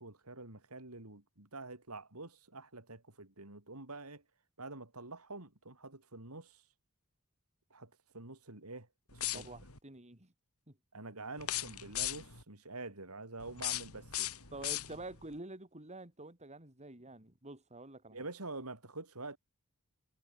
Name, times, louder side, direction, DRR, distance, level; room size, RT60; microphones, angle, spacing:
voice 1, 0.0-4.2 4.6-6.6 7.7-9.5 10.9-14.3 18.1-19.4, right 3 dB, 80° right, 4.6 m, -47 dB
sound 1, 9.1-9.8 11.4-12.4 13.4-15.3, left 13 dB, 75° left, 4.9 m, -38 dB
voice 2, 9.3-10.3 10.7-10.8 14.5-18.3, right 2 dB, 30° right, 4.2 m, -48 dB
head